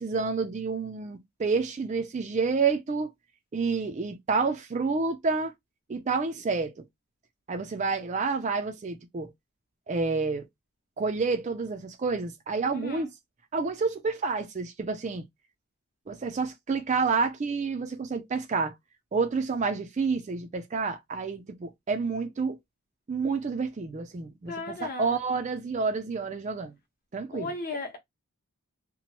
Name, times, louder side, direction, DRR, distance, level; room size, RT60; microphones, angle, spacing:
voice 1, 0.0-3.1 3.5-5.5 5.9-6.7 7.5-9.3 9.9-10.5 11.0-13.1 13.5-15.2 16.1-18.7 19.1-22.6 23.1-26.7 27.1-27.5, right 4 dB, 30° right, 0.3 m, -29 dB
voice 2, 12.7-13.1 24.5-25.2 27.3-28.0, left 3 dB, 40° left, 0.9 m, -35 dB
3.0 x 2.0 x 2.8 m
head